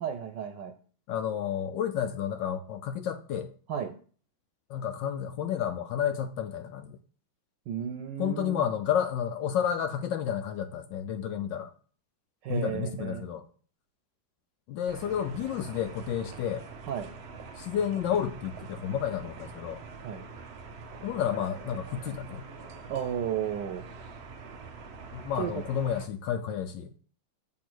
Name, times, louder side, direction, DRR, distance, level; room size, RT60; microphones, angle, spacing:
voice 1, 0.0-0.7 3.7-4.0 7.7-8.6 12.4-13.2 16.9-17.1 20.0-20.2 22.9-23.8 25.4-25.6, right 9 dB, 70° right, 1.2 m, -33 dB
voice 2, 1.1-3.5 4.7-7.0 8.2-11.7 12.5-13.4 14.7-16.7 17.6-19.8 21.0-22.5 25.1-27.0, left 9 dB, 75° left, 1.2 m, -31 dB
sound 1, 14.9-26.1, right 4 dB, 90° right, 0.5 m, -45 dB
7.4 x 3.7 x 6.1 m
omnidirectional pair, 2.1 m